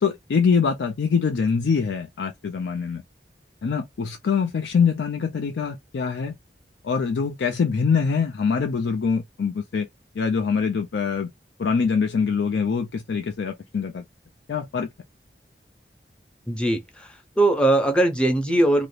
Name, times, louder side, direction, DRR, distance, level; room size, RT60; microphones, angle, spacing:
voice 1, 0.0-3.0 3.6-6.4 6.8-9.9 10.2-11.3 11.6-14.0 14.5-14.9, left 5 dB, 85° left, 0.4 m, -24 dB
voice 2, 16.5-18.9, right 1 dB, 5° left, 0.5 m, -21 dB
2.8 x 2.5 x 3.1 m
head